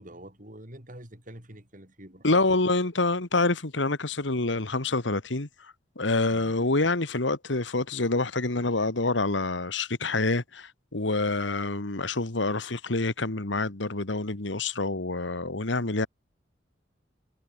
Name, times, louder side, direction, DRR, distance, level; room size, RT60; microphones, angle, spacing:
voice 1, 0.0-2.6 6.3-6.6, right 1 dB, 45° right, 6.1 m, -46 dB
voice 2, 2.2-5.5 6.0-16.1, left 2 dB, 80° left, 1.8 m, -27 dB
head